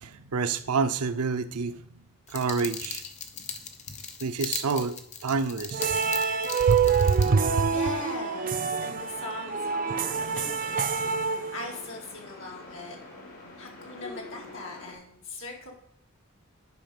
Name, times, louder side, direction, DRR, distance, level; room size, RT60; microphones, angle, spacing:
voice 1, 0.0-1.8 2.3-3.0 4.2-6.0 6.7-7.7, right 4 dB, 90° right, 0.6 m, -27 dB
sound 1, 2.3-7.3, left 6 dB, 30° left, 0.7 m, -38 dB
sound 2, 5.7-12.0, right 6 dB, 35° right, 0.4 m, -27 dB
sound 3, 7.2-14.9, left 2 dB, 75° left, 2.9 m, -46 dB
voice 2, 7.7-10.9 11.5-13.0 13.6-15.7, left 3 dB, 60° left, 2.2 m, -40 dB
11.0 x 4.9 x 5.3 m
head